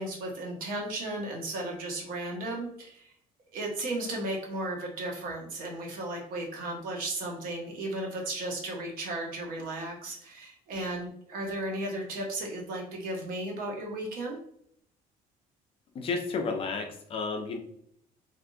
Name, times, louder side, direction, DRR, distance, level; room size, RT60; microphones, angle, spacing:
voice 1, 0.0-3.1 3.5-14.4, right 1 dB, 65° right, 0 dB, 0.9 m, -35 dB
voice 2, 15.9-17.6, left 4 dB, 35° left, 4 dB, 0.4 m, -32 dB
3.4 x 2.5 x 2.6 m, 0.68 s
cardioid pair, 175°, 16 cm